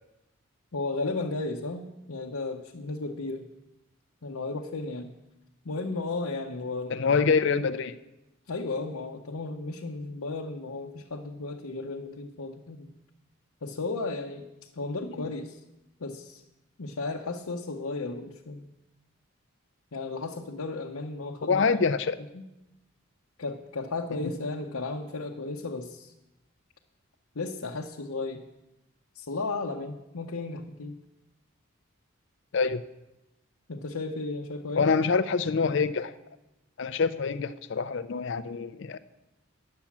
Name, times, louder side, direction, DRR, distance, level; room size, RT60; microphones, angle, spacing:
voice 1, 0.7-3.5 4.2-5.1 5.6-7.0 8.5-12.9 13.6-14.4 14.8-15.6 16.0-16.4 16.8-18.6 19.9-21.7 22.3-22.4 23.4-26.1 27.3-28.4 29.1-30.9 33.7-34.9, left 3 dB, 85° left, 0 dB, 0.8 m, -34 dB
voice 2, 6.9-7.9 21.4-22.2 32.5-32.8 34.8-36.1 36.8-39.0, left 5 dB, 55° left, 12 dB, 0.5 m, -25 dB
10.5 x 8.4 x 7.2 m, 0.95 s
head